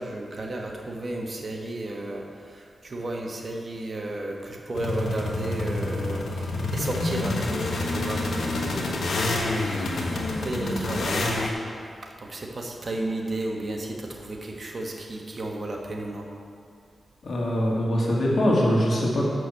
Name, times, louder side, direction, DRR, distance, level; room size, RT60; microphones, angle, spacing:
voice 1, 0.0-11.4 11.8-16.3, right 2 dB, 50° right, 0 dB, 1.4 m, -33 dB
sound 1, 4.8-11.5, left 2 dB, 80° left, 1.2 m, -28 dB
voice 2, 17.2-19.2, equal, 65° left, -4 dB, 2.4 m, -22 dB
6.8 x 6.2 x 7.5 m, 2.3 s
cardioid pair, 65°, 0 cm